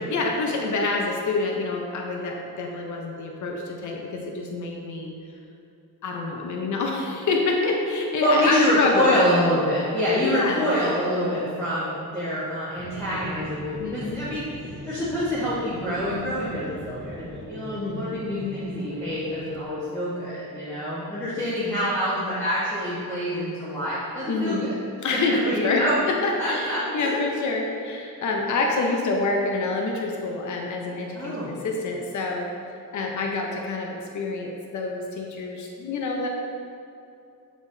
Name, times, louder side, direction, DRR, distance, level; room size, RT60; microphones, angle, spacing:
voice 1, 0.1-5.1 6.0-9.1 10.2-10.7 13.8-14.2 17.7-18.6 24.3-24.7 25.0-25.8 26.1-32.5 32.9-36.3, left 3 dB, 55° left, 0 dB, 0.7 m, -27 dB
voice 2, 8.2-24.7 25.1-25.9 26.4-27.2 31.1-31.5, equal, 5° left, -11 dB, 1.2 m, -26 dB
sound 1, 12.7-19.7, right 1 dB, 30° right, 0.9 m, -40 dB
7.2 x 5.8 x 2.7 m, 2.7 s
wide cardioid pair, 150°, 36 cm